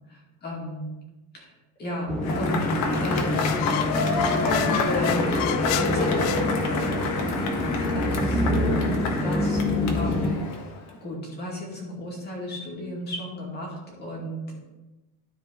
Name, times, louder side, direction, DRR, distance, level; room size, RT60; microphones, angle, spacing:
voice 1, 0.1-0.9 1.3-1.5 1.8-2.6 3.0-3.5 4.2-7.0 7.7-9.6 9.9-10.3 10.9-14.6, left 1 dB, 25° left, -3 dB, 2.3 m, -34 dB
sound 1, 2.1-10.4, left 1 dB, ahead, 0.4 m, -26 dB
Cheering / Applause / Crowd, 2.2-10.9, left 3 dB, 45° left, 1.4 m, -29 dB
sound 2, 3.1-7.1, left 13 dB, 75° left, 0.6 m, -31 dB
13.0 x 4.9 x 3.9 m, 1.0 s
cardioid pair, 170°, 38 cm